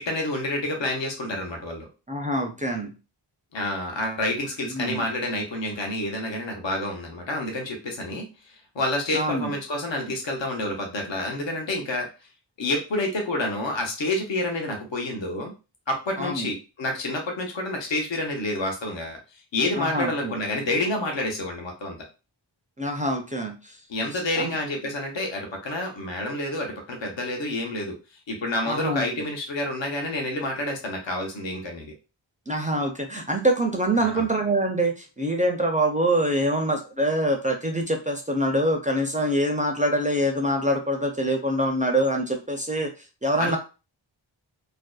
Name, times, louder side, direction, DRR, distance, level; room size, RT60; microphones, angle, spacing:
voice 1, 0.0-1.9 3.5-12.1 12.6-15.5 15.9-19.2 19.5-22.0 23.9-28.0 28.3-31.9 34.0-34.3 43.4-43.6, left 1 dB, 75° left, 2 dB, 0.7 m, -28 dB
voice 2, 2.1-2.9 4.7-5.0 9.1-9.5 16.2-16.5 19.7-20.4 22.8-23.5 24.4-24.5 28.7-29.2 32.5-42.9 43.2-43.6, right 1 dB, 20° right, 2 dB, 0.4 m, -25 dB
2.6 x 2.1 x 2.2 m, 0.30 s
wide cardioid pair, 60°, 45 cm